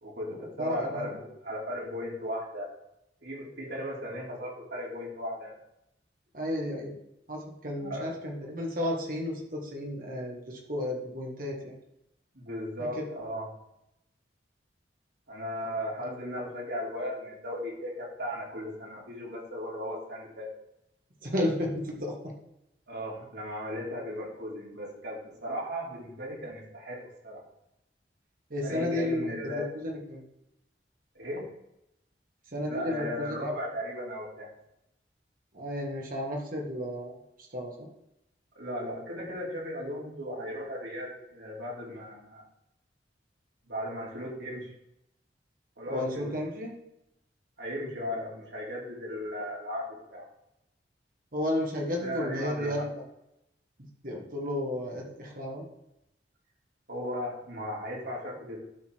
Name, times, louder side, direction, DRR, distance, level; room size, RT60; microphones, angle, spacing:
voice 1, 0.0-2.7 3.2-5.5 7.8-8.1 12.3-13.5 15.3-20.5 22.9-27.4 28.6-29.7 31.1-31.5 32.7-34.5 38.5-42.4 43.7-44.7 45.8-46.3 47.6-50.3 52.0-52.9 56.9-58.6, equal, 75° right, -3 dB, 3.3 m, -36 dB
voice 2, 0.6-1.1 6.3-7.0 7.3-11.8 16.0-16.1 21.2-22.2 28.5-30.2 32.5-33.5 35.5-37.1 37.5-37.9 45.9-46.7 51.3-52.9 54.0-55.6, left 1 dB, 50° right, -1 dB, 1.8 m, -33 dB
12.5 x 4.1 x 4.7 m, 0.83 s
head